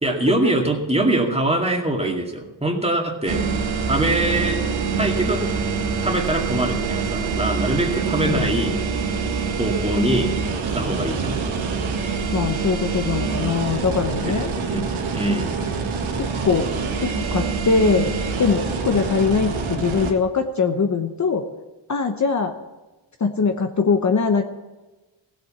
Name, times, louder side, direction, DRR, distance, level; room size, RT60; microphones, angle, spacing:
voice 1, 0.0-3.4 3.9-4.6 5.0-5.4 6.0-8.8 9.6-10.3 10.7-11.4 14.3-14.4 14.6-14.9 15.1-15.6, right 1 dB, 15° right, 1 dB, 2.3 m, -23 dB
sound 1, 3.3-20.1, right 5 dB, 80° right, 2.1 m, -25 dB
voice 2, 8.2-8.5 12.3-14.5 16.2-16.7 17.0-21.4 21.9-22.5 23.2-24.4, left 5 dB, 35° left, 5 dB, 1.0 m, -22 dB
16.0 x 7.8 x 7.1 m, 1.1 s
cardioid pair, 90°, 47 cm